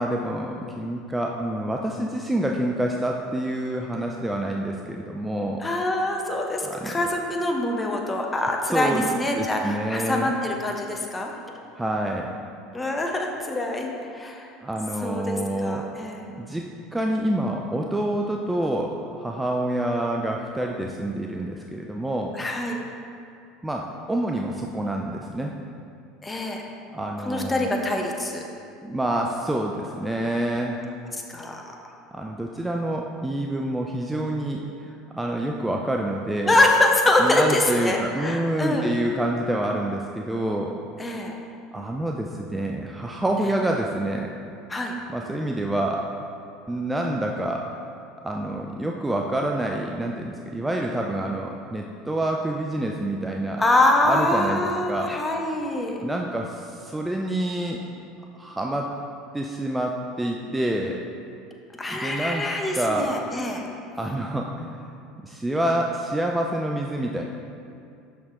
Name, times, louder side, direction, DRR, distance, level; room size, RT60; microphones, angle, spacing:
voice 1, 0.0-5.6 6.6-7.0 8.7-9.1 9.3-10.3 11.8-12.3 14.6-15.9 16.4-16.7 16.9-22.4 23.6-25.5 26.9-27.7 28.8-30.8 32.1-36.6 37.2-40.8 41.7-44.3 45.1-46.1 46.7-47.7 48.2-53.7 54.0-55.2 56.0-57.8 58.3-58.9 59.3-61.0 61.9-62.5 62.7-63.1 64.0-64.9 65.2-67.2, right 1 dB, 10° right, 1 dB, 0.4 m, -27 dB
voice 2, 5.6-11.3 12.7-14.5 15.0-16.3 22.4-22.9 26.2-26.6 27.2-28.4 31.1-31.7 36.4-38.9 41.0-41.3 44.7-44.9 53.6-56.0 61.7-63.7, left 1 dB, 15° left, 1 dB, 0.9 m, -24 dB
6.1 x 5.9 x 3.7 m, 2.5 s
figure-of-eight pair, 70°, 0 cm